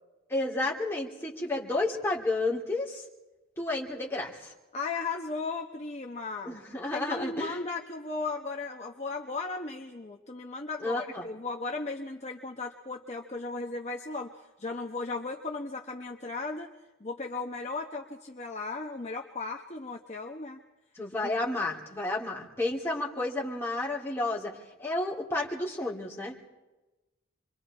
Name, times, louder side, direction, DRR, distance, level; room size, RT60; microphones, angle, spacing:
voice 1, 0.3-3.0 3.6-4.5 6.4-7.6 10.8-11.3 20.9-24.5 24.8-26.5, left 2 dB, 10° left, -4 dB, 3.3 m, -31 dB
voice 2, 4.7-6.6 6.9-16.7 17.0-20.6 21.2-21.3, left 3 dB, 30° left, 2 dB, 1.0 m, -36 dB
28.0 x 23.0 x 4.5 m, 1.1 s
head